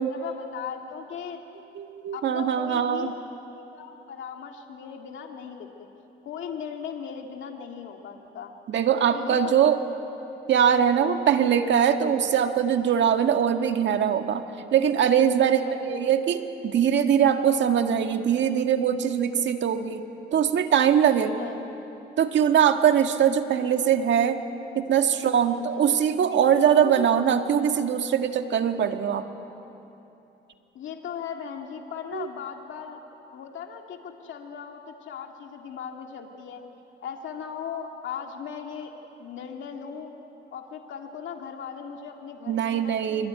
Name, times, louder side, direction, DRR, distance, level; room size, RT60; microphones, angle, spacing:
voice 1, 0.1-1.4 2.1-3.2 3.7-5.9 6.2-8.5 9.1-9.6 15.4-16.1 21.1-21.9 25.2-26.0 30.7-33.0 33.3-36.6 37.0-38.9 39.2-40.1 40.5-43.3, left 7 dB, 75° left, 2 dB, 2.2 m, -38 dB
voice 2, 1.8-3.1 8.7-9.8 10.5-14.4 14.7-20.0 20.3-21.3 22.2-24.4 24.8-29.2 32.1-32.3 42.5-43.3, right 8 dB, 65° right, 6 dB, 1.8 m, -22 dB
25.0 x 25.0 x 9.6 m, 2.9 s
cardioid pair, 90°, 20 cm